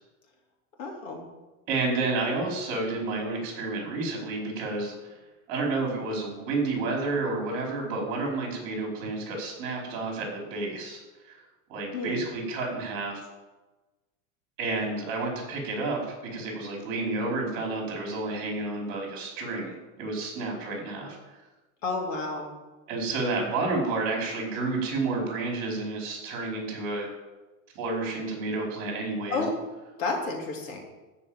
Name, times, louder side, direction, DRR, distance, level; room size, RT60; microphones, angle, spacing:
voice 1, 0.8-1.2 11.9-12.2 21.8-22.5 29.3-29.6 30.0-30.8, left 3 dB, 65° left, 0 dB, 3.4 m, -30 dB
voice 2, 1.7-5.2 5.5-11.0 11.2-11.4 11.7-13.2 14.6-16.0 16.3-21.4 22.9-27.1 27.7-29.4, right 3 dB, 45° right, -1 dB, 4.6 m, -30 dB
13.0 x 5.2 x 9.1 m, 1.1 s
supercardioid pair, 175°, 42 cm